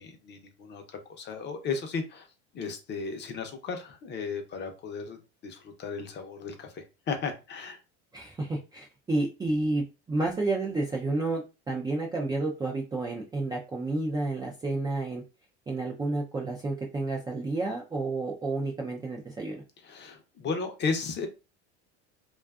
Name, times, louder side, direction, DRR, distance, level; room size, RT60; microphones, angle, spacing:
voice 1, 0.0-2.3 2.5-5.2 5.4-7.8 19.8-21.3, left 4 dB, 30° left, 5 dB, 0.6 m, -35 dB
voice 2, 8.1-11.4 11.7-15.2 15.7-19.6, right 2 dB, 15° right, -2 dB, 0.3 m, -30 dB
2.5 x 2.4 x 2.2 m, 0.29 s
supercardioid pair, 110°, 34 cm